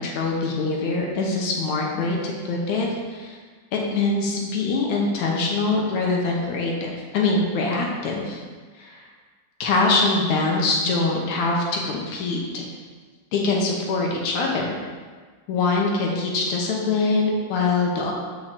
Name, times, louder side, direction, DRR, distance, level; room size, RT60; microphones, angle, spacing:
voice 1, 0.0-3.4 3.7-8.4 8.8-9.0 9.6-12.7 13.3-14.8 15.5-18.1, left 3 dB, 70° left, -1 dB, 2.1 m, -23 dB
5.8 x 4.7 x 6.5 m, 1.5 s
omnidirectional pair, 4.0 m